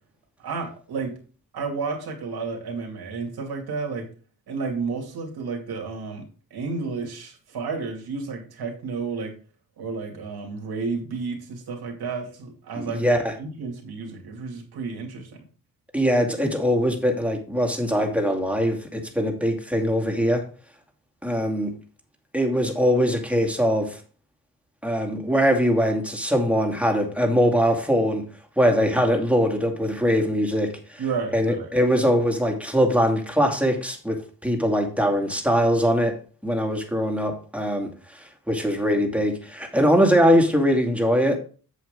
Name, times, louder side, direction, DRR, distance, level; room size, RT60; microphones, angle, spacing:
voice 1, 0.4-1.2 1.5-4.1 4.5-9.3 9.8-15.4 31.0-31.7, right 4 dB, 85° right, 2.5 m, -31 dB
voice 2, 12.8-13.3 15.9-20.4 21.2-21.7 22.3-24.0 24.8-28.2 28.6-31.0 31.3-36.2 36.4-41.4, equal, 5° right, 2.4 m, -22 dB
7.9 x 7.5 x 3.7 m
cardioid pair, 70°, 37 cm